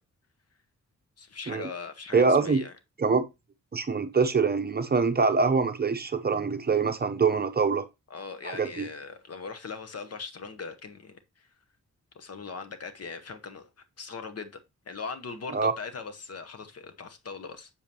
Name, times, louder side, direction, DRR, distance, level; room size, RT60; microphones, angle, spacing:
voice 1, 1.2-2.7 8.1-11.5 12.1-13.7 14.0-14.6 14.9-17.7, left 5 dB, 50° left, 1.0 m, -40 dB
voice 2, 2.1-2.6 3.0-3.3 3.7-7.8 8.4-8.9 15.5-15.7, right 4 dB, 30° right, 0.7 m, -24 dB
7.0 x 7.0 x 2.9 m
cardioid pair, 85°, 31 cm